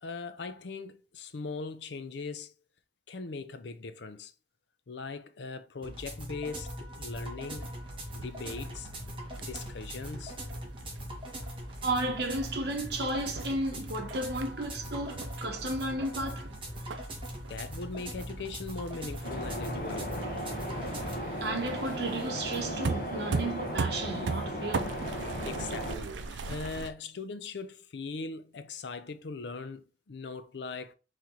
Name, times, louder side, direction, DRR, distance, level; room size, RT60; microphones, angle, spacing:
voice 1, 0.0-2.5 3.1-4.3 4.9-7.7 8.1-8.9 9.4-10.4 17.5-20.3 25.4-30.9, left 4 dB, 75° left, 0.5 m, -40 dB
sound 1, 5.8-21.2, equal, 30° right, 1.3 m, -41 dB
sound 2, 7.6-26.9, right 4 dB, 90° right, 0.5 m, -41 dB
voice 2, 11.8-16.5 21.4-25.0, right 2 dB, 65° right, 1.1 m, -33 dB
sound 3, 19.2-26.0, equal, 50° left, 1.2 m, -36 dB
4.3 x 3.2 x 3.8 m
head